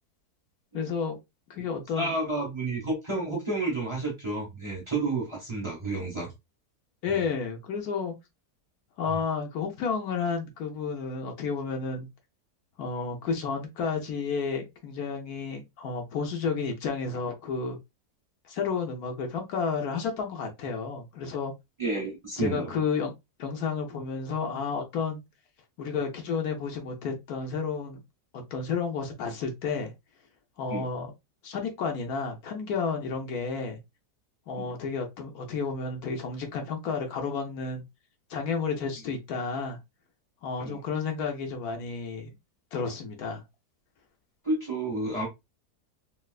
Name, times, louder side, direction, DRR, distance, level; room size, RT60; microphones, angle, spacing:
voice 1, 0.7-1.2 1.5-2.1 7.0-8.1 9.0-12.1 12.8-17.8 18.4-21.5 22.4-23.1 23.4-25.2 25.8-28.0 28.3-29.9 30.6-31.1 31.4-33.8 34.5-37.8 38.3-39.8 40.4-42.3 42.7-43.4, left 5 dB, 70° left, 1.1 m, -31 dB
voice 2, 1.9-6.3 7.1-7.2 21.8-22.7 30.7-30.8 34.6-34.7 40.6-40.8 44.4-45.3, right 2 dB, 20° right, 1.0 m, -30 dB
3.3 x 2.8 x 2.3 m
omnidirectional pair, 1.7 m